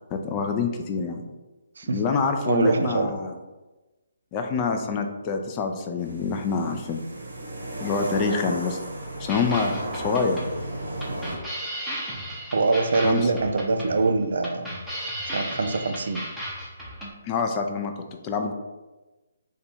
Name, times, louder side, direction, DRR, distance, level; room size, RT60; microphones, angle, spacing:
voice 1, 0.1-1.3 1.8-3.3 4.3-7.0 7.8-8.8 9.2-10.4 13.0-13.3 17.2-17.9 18.2-18.5, left 5 dB, 25° left, 4 dB, 0.4 m, -26 dB
voice 2, 2.4-3.1 12.5-14.7 15.3-16.2, right 3 dB, 70° right, 6 dB, 0.3 m, -23 dB
sound 1, 6.0-11.4, right 1 dB, 90° right, 0.8 m, -34 dB
sound 2, 9.3-17.1, equal, ahead, 0.7 m, -35 dB
2.7 x 2.3 x 4.1 m, 1.1 s
hypercardioid pair, 150°, 0 cm